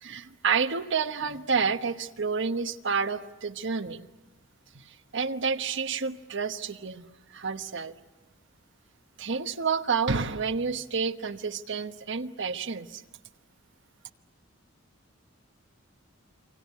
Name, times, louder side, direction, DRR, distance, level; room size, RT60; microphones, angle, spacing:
voice 1, 0.0-4.1 4.7-8.0 9.2-13.0, right 5 dB, 60° right, 8 dB, 1.1 m, -29 dB
28.0 x 25.0 x 8.3 m, 1.1 s
head